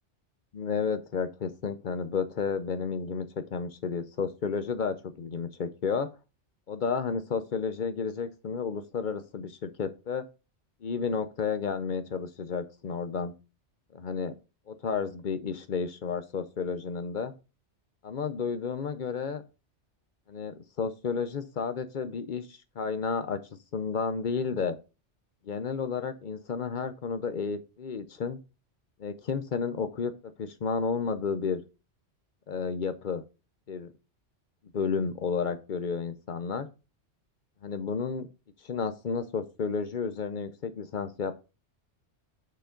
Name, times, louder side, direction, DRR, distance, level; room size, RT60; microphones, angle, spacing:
voice 1, 0.5-6.1 6.7-10.2 10.8-13.3 13.9-14.3 14.7-17.3 18.0-19.4 20.3-23.4 23.7-24.8 25.4-28.4 29.0-30.1 30.4-31.6 32.5-33.2 33.7-33.9 34.7-36.7 37.6-38.3 38.6-41.3, left 5 dB, 50° left, 11 dB, 0.7 m, -32 dB
6.8 x 5.1 x 3.8 m, 0.30 s
omnidirectional pair, 1.2 m